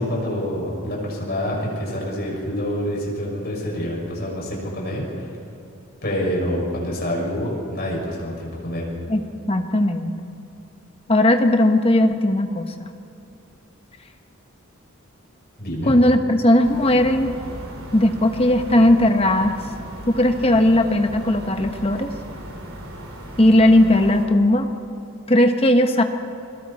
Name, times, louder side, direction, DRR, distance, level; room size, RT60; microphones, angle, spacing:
voice 1, 0.0-5.3 6.0-8.9 15.6-15.9, equal, 45° left, -3 dB, 6.2 m, -27 dB
voice 2, 9.1-10.1 11.1-12.9 15.9-17.4 17.9-19.6 20.1-22.1 23.4-24.7 25.3-26.0, left 1 dB, 25° left, 6 dB, 1.2 m, -17 dB
sound 1, 16.6-24.3, equal, 65° right, 3.4 m, -37 dB
29.0 x 22.0 x 4.3 m, 2.7 s
head